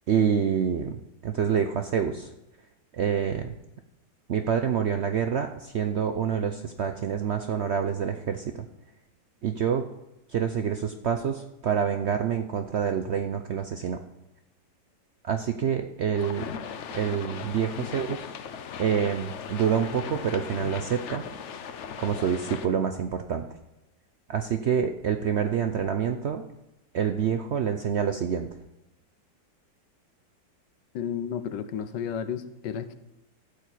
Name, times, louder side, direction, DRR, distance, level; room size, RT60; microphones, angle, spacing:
voice 1, 0.1-2.3 2.9-3.5 4.3-8.7 9.4-9.8 10.3-14.0 15.2-16.5 16.9-18.3 18.8-21.2 22.0-23.4 24.3-26.4 26.9-28.5, right 7 dB, 80° right, 7 dB, 0.6 m, -27 dB
sound 1, 16.2-22.7, left 7 dB, 60° left, 0.8 m, -38 dB
voice 2, 30.9-32.9, left 8 dB, 80° left, 12 dB, 1.4 m, -33 dB
13.0 x 4.5 x 8.4 m, 0.92 s
omnidirectional pair, 1.9 m